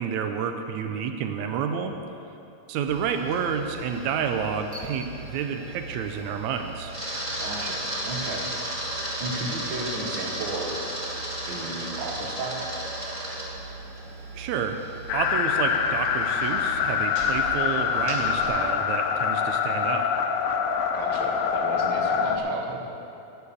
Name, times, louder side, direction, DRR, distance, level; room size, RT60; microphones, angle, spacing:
voice 1, 0.0-2.0 2.7-6.9 14.3-14.8 15.1-20.1, right 7 dB, 85° right, 6 dB, 2.0 m, -29 dB
Camera, 2.9-18.5, right 1 dB, 15° right, 1.1 m, -35 dB
voice 2, 7.4-8.5 9.2-10.9 11.5-12.6 20.9-22.9, right 3 dB, 50° right, 0 dB, 1.7 m, -34 dB
sound 1, 15.1-22.4, left 7 dB, 90° left, 2.1 m, -25 dB
11.5 x 7.0 x 8.4 m, 2.7 s
omnidirectional pair, 3.3 m